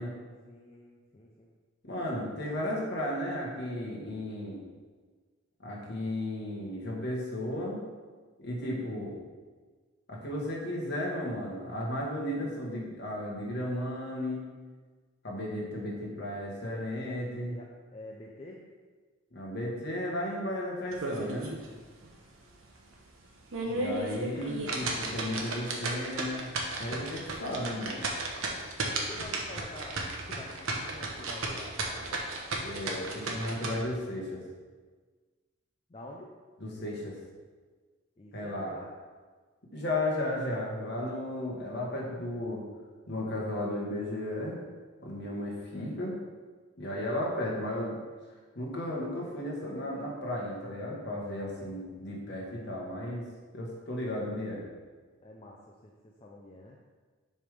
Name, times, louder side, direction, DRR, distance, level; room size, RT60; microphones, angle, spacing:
voice 1, 0.0-1.5 17.5-18.6 24.3-24.7 29.1-30.0 30.3-32.2 35.9-36.4 38.2-38.9 55.2-56.8, left 1 dB, 25° left, -1 dB, 0.4 m, -48 dB
voice 2, 1.8-4.6 5.6-7.8 8.4-9.2 10.1-14.4 15.2-17.6 19.3-21.6 23.6-26.5 26.8-28.1 32.6-34.4 36.6-37.2 38.3-38.7 39.7-42.6 43.1-44.6 45.0-46.1 46.8-48.0 48.5-53.2 53.5-54.6, left 1 dB, 50° left, -3 dB, 1.5 m, -34 dB
sound 1, 20.9-21.7 22.0-22.1 22.6-22.7 23.3-33.7, right 2 dB, 75° right, 1.0 m, -34 dB
7.3 x 3.4 x 4.9 m, 1.4 s
head